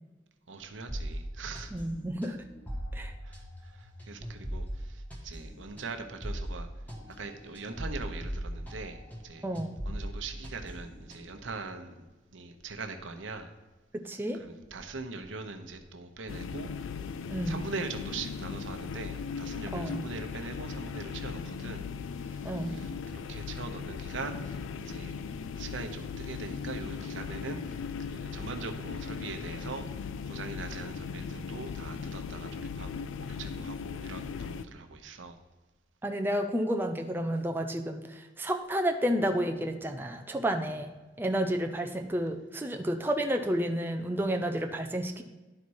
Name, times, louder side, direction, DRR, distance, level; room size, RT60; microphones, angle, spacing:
voice 1, 0.5-1.7 3.2-6.7 7.2-9.5 9.8-12.0 12.3-13.5 14.3-16.9 17.4-21.8 22.3-24.6 24.8-25.2 25.6-30.0 30.3-35.4, right 3 dB, 80° right, 6 dB, 0.9 m, -42 dB
sound 1, 0.9-9.3 9.5-11.5, equal, 10° left, 1.3 m, -39 dB
voice 2, 1.7-2.4 2.9-3.1 9.4-9.8 13.9-14.4 17.3-17.6 19.7-20.0 22.4-22.8 36.0-45.2, equal, 10° right, 3 dB, 0.4 m, -31 dB
sound 2, 16.3-34.7, left 6 dB, 85° left, 0.4 m, -38 dB
11.0 x 4.2 x 4.7 m, 1.2 s
head